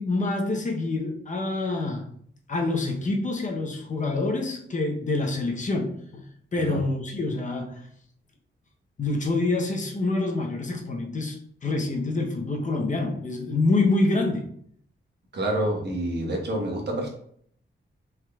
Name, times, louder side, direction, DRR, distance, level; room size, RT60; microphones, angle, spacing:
voice 1, 0.0-2.1 2.5-6.2 6.5-7.9 9.0-11.4 11.6-14.5, left 2 dB, 40° left, 2 dB, 0.8 m, -26 dB
voice 2, 15.3-17.1, right 1 dB, 60° right, 0 dB, 1.2 m, -27 dB
6.0 x 3.7 x 2.3 m, 0.64 s
wide cardioid pair, 130°, 20 cm